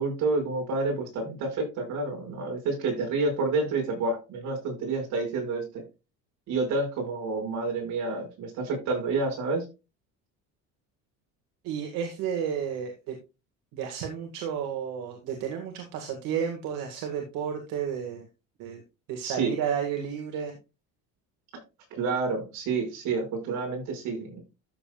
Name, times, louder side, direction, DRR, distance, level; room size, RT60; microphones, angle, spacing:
voice 1, 0.0-5.8 6.5-9.6 19.2-19.5 21.9-24.4, right 3 dB, 60° right, 2 dB, 6.1 m, -29 dB
voice 2, 11.6-13.2 13.7-18.3 18.6-18.8 19.1-20.5, right 8 dB, 80° right, 3 dB, 2.1 m, -32 dB
13.0 x 7.4 x 2.4 m, 0.27 s
cardioid pair, 170°, 32 cm